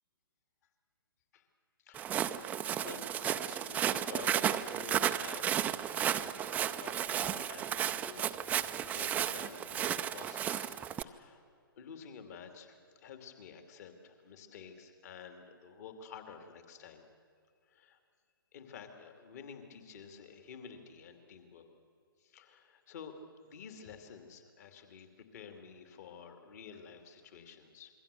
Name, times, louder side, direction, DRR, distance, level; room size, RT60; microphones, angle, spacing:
voice 1, 1.8-2.2 2.8-5.9 6.4-11.4 11.8-17.1 17.7-18.0 18.5-21.6 22.2-23.1 23.4-27.9, left 6 dB, 45° left, 6 dB, 2.7 m, -51 dB
Walk footsteps, 1.9-11.0, right 10 dB, 15° right, 0.5 m, -33 dB
27.0 x 22.5 x 7.0 m, 2.3 s
figure-of-eight pair, 125°, 12 cm